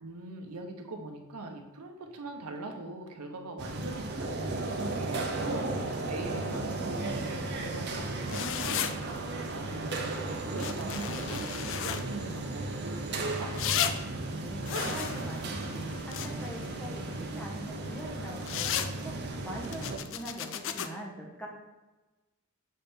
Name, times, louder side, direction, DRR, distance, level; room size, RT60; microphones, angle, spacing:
voice 1, 0.0-9.1 9.5-13.5, right 2 dB, 90° right, 4 dB, 0.9 m, -41 dB
sound 1, 3.6-20.0, right 2 dB, 50° right, 0.7 m, -35 dB
sound 2, 8.3-8.9 10.6-12.0 13.6-13.9 14.7-16.6 18.4-18.9 19.6-20.9, left 9 dB, 60° left, 0.4 m, -33 dB
voice 2, 14.3-21.5, right 1 dB, 5° left, -1 dB, 0.8 m, -43 dB
6.4 x 3.5 x 4.4 m, 1.1 s
head